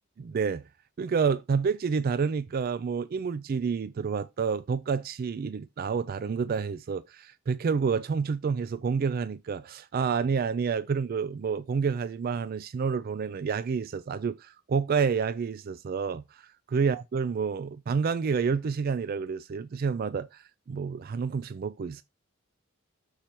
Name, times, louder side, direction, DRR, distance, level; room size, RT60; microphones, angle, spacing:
voice 1, 0.2-0.6 1.0-22.0, right 5 dB, 45° right, 0.3 m, -29 dB
6.7 x 4.3 x 5.9 m
head